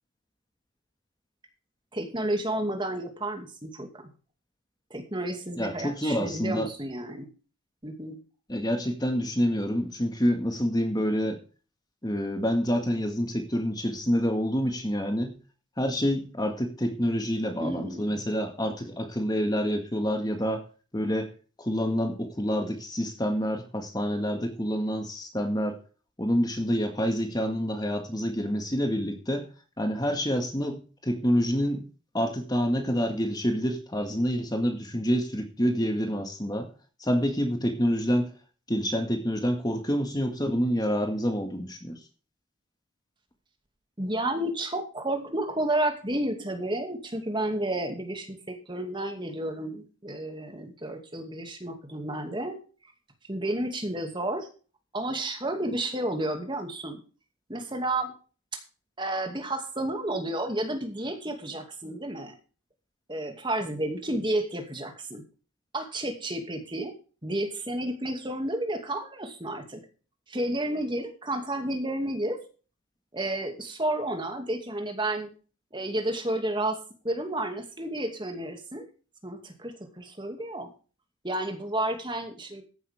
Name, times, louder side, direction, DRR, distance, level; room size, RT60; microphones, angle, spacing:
voice 1, 1.9-4.1 4.9-7.3 7.8-8.2 17.6-18.2 44.0-52.6 53.3-54.5 54.9-57.0 57.5-58.1 59.0-62.4 63.1-65.2 65.7-66.9 67.2-69.8 70.3-72.4 73.1-75.3 75.7-78.9 79.2-80.7 81.2-82.6, right 1 dB, 20° right, 5 dB, 2.4 m, -31 dB
voice 2, 5.6-6.7 8.5-11.4 12.0-15.3 15.8-20.6 20.9-21.3 21.6-25.8 26.2-29.5 29.8-31.9 32.1-36.7 37.0-38.3 38.7-42.0, equal, 20° left, 5 dB, 1.9 m, -27 dB
14.5 x 11.0 x 3.7 m, 0.37 s
head